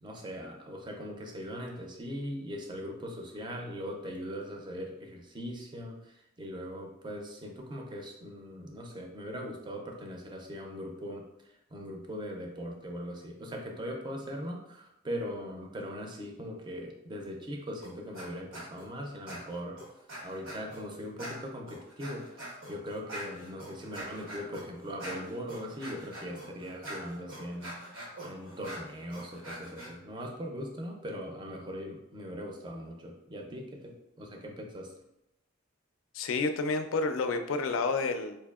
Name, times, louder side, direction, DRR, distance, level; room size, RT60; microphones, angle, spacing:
voice 1, 0.0-19.8 20.2-34.9, equal, 20° right, 1 dB, 0.5 m, -40 dB
sound 1, 17.8-18.3 18.5-18.9 19.3-20.8 21.2-29.9, right 1 dB, 85° right, 1.0 m, -44 dB
voice 2, 36.1-38.4, left 3 dB, 80° left, 8 dB, 0.4 m, -29 dB
4.4 x 2.7 x 2.3 m, 0.86 s
head